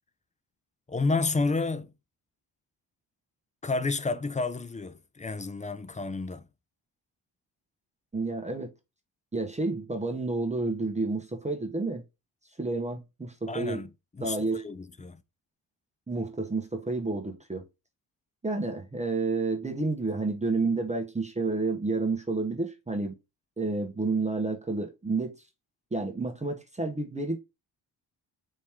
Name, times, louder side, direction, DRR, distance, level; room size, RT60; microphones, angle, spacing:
voice 1, 0.9-1.9 3.6-6.4 13.5-13.9 14.1-15.2, left 3 dB, 15° left, 0.5 m, -30 dB
voice 2, 8.1-8.7 9.3-12.0 12.6-13.8 14.2-14.6 16.1-17.6 18.4-23.2 23.6-25.4 25.9-27.4, right 3 dB, 15° right, 0.9 m, -30 dB
4.4 x 3.1 x 3.4 m
cardioid pair, 75°, 43 cm